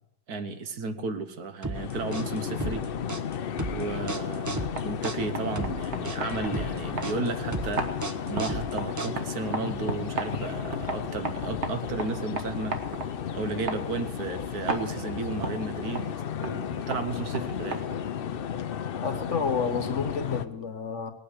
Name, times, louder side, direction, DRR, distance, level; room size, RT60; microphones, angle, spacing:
voice 1, 0.3-2.8 3.7-7.8 8.3-12.7 13.3-16.1 16.4-17.8, right 4 dB, 65° right, 8 dB, 1.6 m, -33 dB
sound 1, 1.6-9.5, right 2 dB, 30° right, 0.3 m, -35 dB
sound 2, 1.7-20.5, left 8 dB, 80° left, 0.5 m, -34 dB
sound 3, 4.5-18.2, right 3 dB, 45° right, 1.5 m, -37 dB
voice 2, 19.0-21.1, left 5 dB, 50° left, 8 dB, 1.3 m, -30 dB
19.0 x 9.1 x 6.5 m, 0.83 s
omnidirectional pair, 1.8 m